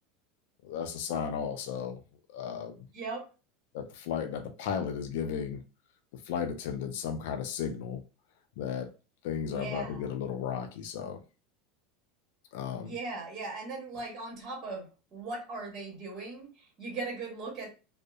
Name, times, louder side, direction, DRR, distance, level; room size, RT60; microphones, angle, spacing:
voice 1, 0.6-2.0 2.3-2.9 3.7-5.6 6.3-8.0 8.6-8.9 9.2-11.2 12.5-12.9, left 7 dB, 75° left, 0.4 m, -34 dB
voice 2, 2.9-3.3 9.5-10.1 12.8-17.7, right 3 dB, 35° right, 1.1 m, -39 dB
2.7 x 2.0 x 2.3 m
supercardioid pair, 140°, 0 cm